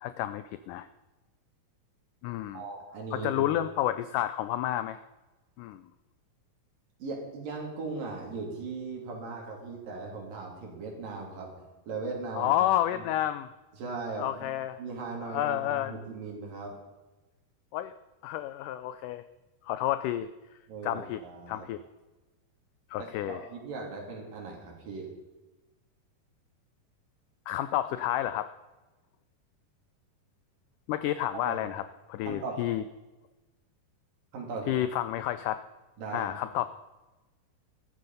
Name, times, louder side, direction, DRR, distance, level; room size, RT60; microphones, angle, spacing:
voice 1, 0.0-0.9 2.2-2.6 3.1-5.0 5.6-5.8 12.4-13.5 14.2-14.8 15.3-15.9 17.7-18.0 18.2-19.2 19.6-20.3 20.8-21.2 21.5-21.8 22.9-23.4 27.5-28.5 30.9-32.8 34.7-35.6 36.1-36.7, left 13 dB, 85° left, 12 dB, 1.8 m, -30 dB
voice 2, 2.5-3.5 7.0-12.6 12.9-13.0 13.8-14.5 14.8-16.8 20.7-21.7 23.0-25.1 31.4-31.6 32.3-32.6 34.3-34.7 36.0-36.3, right 3 dB, 65° right, 0 dB, 4.6 m, -38 dB
13.5 x 12.0 x 5.5 m, 1.1 s
omnidirectional pair, 4.3 m